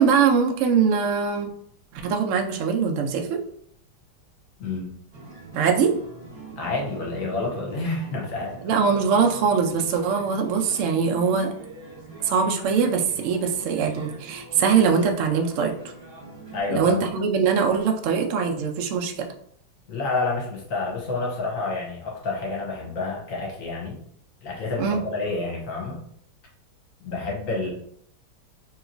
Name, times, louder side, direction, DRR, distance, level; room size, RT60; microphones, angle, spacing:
voice 1, 0.0-1.5 1.9-3.4 5.5-5.9 8.6-11.5 12.2-15.7 16.7-19.3 24.8-25.0, right 6 dB, 80° right, 3 dB, 0.7 m, -22 dB
voice 2, 4.6-4.9 6.6-8.6 16.5-17.0 19.9-24.0 24.4-26.0 27.0-27.7, left 3 dB, 60° left, -1 dB, 1.0 m, -29 dB
sound 1, 5.1-16.6, right 3 dB, 50° right, 0.8 m, -43 dB
3.0 x 2.8 x 2.5 m, 0.66 s
omnidirectional pair, 1.9 m